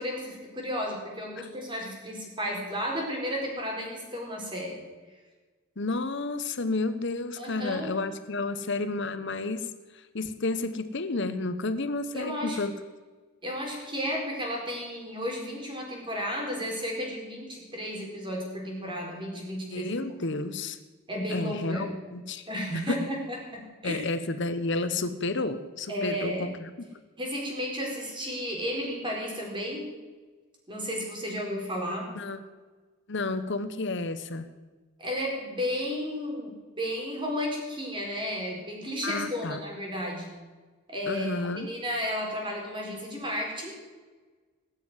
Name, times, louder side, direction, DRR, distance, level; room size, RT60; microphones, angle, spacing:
voice 1, 0.0-4.8 7.4-8.0 12.1-12.6 13.4-19.9 21.1-21.9 22.5-24.0 25.9-26.5 27.2-29.9 30.7-32.1 35.0-40.3 40.9-43.7, equal, 20° right, 0 dB, 4.6 m, -33 dB
voice 2, 5.8-9.7 9.9-12.8 19.7-20.8 21.3-22.5 22.9-23.0 23.8-26.7 32.1-32.4 33.1-34.5 39.0-39.6 41.1-41.7, left 3 dB, 55° left, 11 dB, 1.0 m, -31 dB
19.5 x 7.5 x 9.7 m, 1.3 s
head